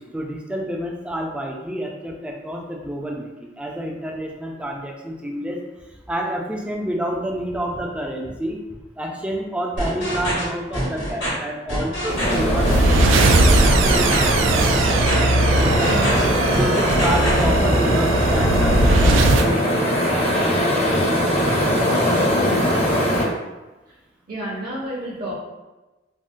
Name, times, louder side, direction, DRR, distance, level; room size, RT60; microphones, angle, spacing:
voice 1, 0.0-5.6 6.1-8.6 9.0-15.1 15.6-16.3 16.6-22.7, equal, 5° right, 0 dB, 0.3 m, -29 dB
sound 1, 9.8-10.4 10.7-11.3 11.7-12.4 12.6-13.2 13.6-14.3 14.6-15.1 15.5-16.2 16.5-17.4, equal, 75° left, 1.5 m, -26 dB
sound 2, 12.1-23.2, equal, 35° left, 0.7 m, -21 dB
sound 3, 12.1-19.5, right 2 dB, 80° right, 0.3 m, -19 dB
voice 2, 24.3-25.3, right 1 dB, 50° right, -5 dB, 0.6 m, -30 dB
3.5 x 2.1 x 2.5 m, 1.1 s
head